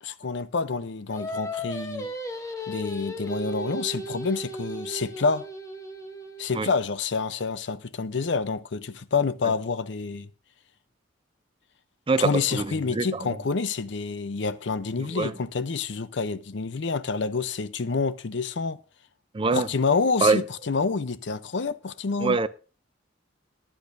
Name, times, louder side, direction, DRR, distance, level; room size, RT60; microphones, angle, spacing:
voice 1, 0.0-2.1 2.7-5.4 6.4-10.3 12.2-18.8 19.5-22.4, left 4 dB, 65° left, 0.6 m, -28 dB
Singing, 1.1-6.5, equal, 15° left, 1.1 m, -35 dB
voice 2, 12.1-13.3 15.0-15.3 19.3-19.7 20.2-20.4 22.2-22.5, right 3 dB, 25° right, 0.5 m, -24 dB
19.0 x 10.0 x 2.6 m
head